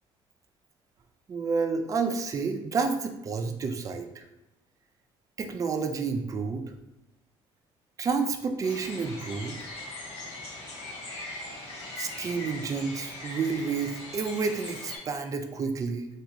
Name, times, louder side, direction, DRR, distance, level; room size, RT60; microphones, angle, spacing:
voice 1, 1.3-4.2 5.4-6.6 8.0-9.6 12.0-16.1, right 5 dB, 30° right, 6 dB, 0.4 m, -30 dB
sound 1, 8.6-15.0, left 2 dB, 80° left, 1.0 m, -40 dB
3.3 x 2.4 x 2.9 m, 0.91 s
cardioid pair, 110°, 11 cm